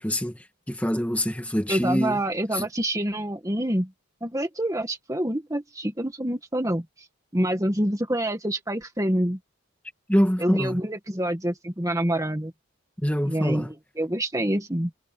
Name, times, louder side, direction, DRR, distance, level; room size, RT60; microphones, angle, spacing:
voice 1, 0.0-2.2 2.5-2.7 10.1-10.8 13.0-13.7, equal, 5° left, 2.0 m, -25 dB
voice 2, 1.7-3.9 4.2-6.8 7.3-9.4 10.4-12.5 13.2-13.7 14.0-14.9, right 1 dB, 15° right, 1.8 m, -26 dB
head